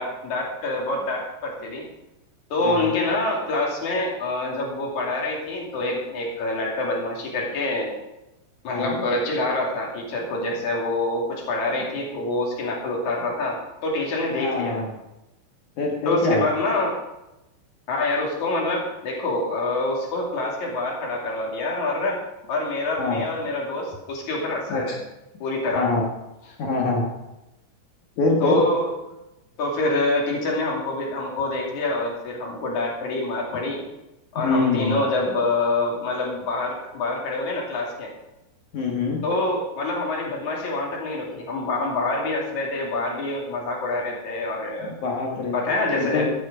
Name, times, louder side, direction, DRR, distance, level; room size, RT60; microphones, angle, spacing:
voice 1, 0.0-1.8 2.5-7.9 8.6-14.8 16.0-16.9 17.9-22.2 22.5-25.0 25.4-25.9 28.4-28.8 29.6-33.8 34.3-38.1 39.2-44.9 45.5-46.3, left 2 dB, 45° left, -2 dB, 3.3 m, -26 dB
voice 2, 2.6-2.9 8.7-9.0 14.4-14.9 15.8-16.5 23.0-23.2 24.7-24.8 25.7-26.0 26.6-27.0 28.2-28.6 34.4-35.0 38.7-39.2 45.0-45.7 45.9-46.3, left 3 dB, 65° left, -1 dB, 1.9 m, -24 dB
13.0 x 9.5 x 5.0 m, 0.95 s
omnidirectional pair, 5.8 m